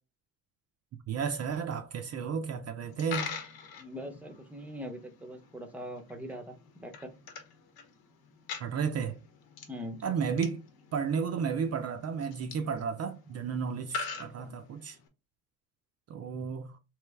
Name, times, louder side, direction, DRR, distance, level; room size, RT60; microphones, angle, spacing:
voice 1, 1.1-3.3 8.6-9.2 10.0-10.6 10.9-15.0 16.1-16.8, right 6 dB, 45° right, 0.5 m, -33 dB
Coin (dropping), 2.8-15.1, left 5 dB, 85° left, 1.1 m, -44 dB
voice 2, 3.8-7.1 9.7-10.0 14.4-14.5, equal, 5° right, 0.6 m, -42 dB
3.2 x 3.0 x 3.4 m
cardioid pair, 130°, 36 cm